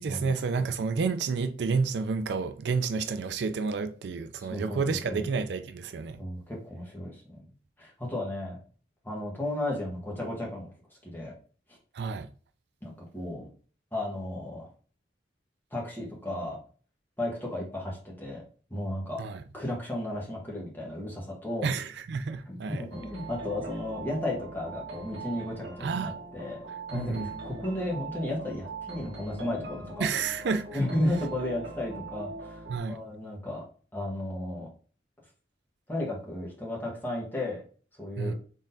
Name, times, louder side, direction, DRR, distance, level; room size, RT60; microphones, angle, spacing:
voice 1, 0.0-6.2 11.9-12.3 19.2-19.4 21.6-22.9 25.8-26.1 26.9-27.3 30.0-30.8 32.7-33.0 38.2-38.3, right 5 dB, 65° right, 0.4 m, -30 dB
voice 2, 4.4-5.2 6.2-7.4 7.8-8.6 9.0-10.7 11.0-11.3 12.8-13.5 13.9-14.7 15.7-16.6 17.2-18.4 18.7-19.2 19.5-21.7 22.5-26.6 26.9-30.1 30.7-32.6 32.9-33.6 33.9-34.7 35.9-37.6 38.0-38.3, left 1 dB, 10° left, 1.3 m, -34 dB
sound 1, 22.9-32.8, right 3 dB, 85° right, 1.1 m, -41 dB
4.0 x 3.6 x 2.6 m
head